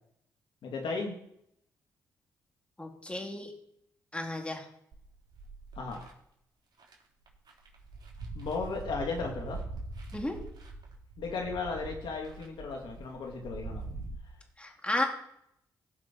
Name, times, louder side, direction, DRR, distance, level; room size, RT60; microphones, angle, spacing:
voice 1, 0.6-1.2 5.8-6.1 8.3-9.6 11.2-13.8, left 4 dB, 70° left, 1 dB, 2.4 m, -35 dB
voice 2, 2.8-3.5 4.1-4.6 10.1-10.4 14.6-15.0, left 1 dB, 15° left, 1 dB, 3.2 m, -33 dB
sound 1, 4.9-6.1 6.8-6.9 7.3-14.1, right 3 dB, 55° right, 3.7 m, -43 dB
16.5 x 6.0 x 4.6 m, 0.75 s
supercardioid pair, 50°, 9 cm